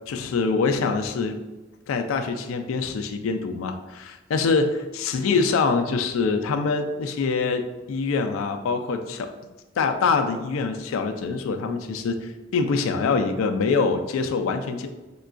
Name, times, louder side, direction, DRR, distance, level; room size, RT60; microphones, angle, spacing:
voice 1, 0.1-1.4 1.9-4.7 4.9-7.6 7.9-9.3 9.8-14.9, left 4 dB, 90° left, 6 dB, 0.3 m, -24 dB
3.7 x 2.2 x 2.4 m, 1.1 s
head